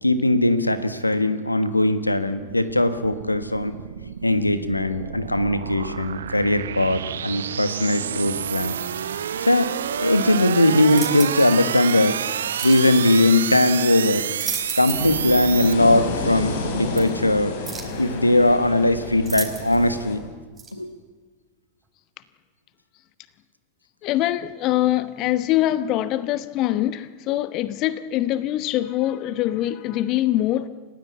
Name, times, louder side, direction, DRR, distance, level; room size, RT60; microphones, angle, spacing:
voice 1, 0.0-3.7 4.2-8.8 9.4-12.2 12.6-14.3 14.7-17.5 18.0-20.2 20.7-20.9, left 1 dB, 85° left, 1.4 m, -20 dB
sound 1, 2.1-15.7, right 9 dB, 65° right, 0.8 m, -29 dB
sound 2, 10.9-11.6 12.6-12.9 14.1-15.2 15.5-15.6 17.0-17.1 17.6-18.0 19.2-19.9 20.6-20.7, right 5 dB, 15° right, 4.6 m, -34 dB
sound 3, 14.9-20.2, left 2 dB, 60° left, 5.0 m, -30 dB
voice 2, 24.0-30.7, left 14 dB, 40° left, 1.0 m, -23 dB
29.5 x 16.0 x 8.5 m
figure-of-eight pair, 90°, 0 cm